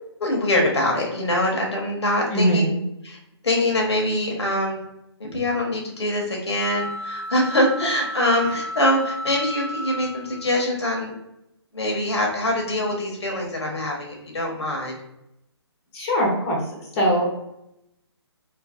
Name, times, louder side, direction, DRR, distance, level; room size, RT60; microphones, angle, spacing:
voice 1, 0.2-2.6 3.0-3.2 3.4-4.8 5.2-11.1 11.7-15.0, left 1 dB, 75° left, -1 dB, 1.1 m, -24 dB
voice 2, 2.3-2.8 15.9-16.6 17.0-17.3, equal, 25° left, -3 dB, 0.9 m, -21 dB
sound 1, 6.6-10.6, equal, 10° right, 0.4 m, -33 dB
2.7 x 2.7 x 2.4 m, 0.83 s
figure-of-eight pair, 140°, 14 cm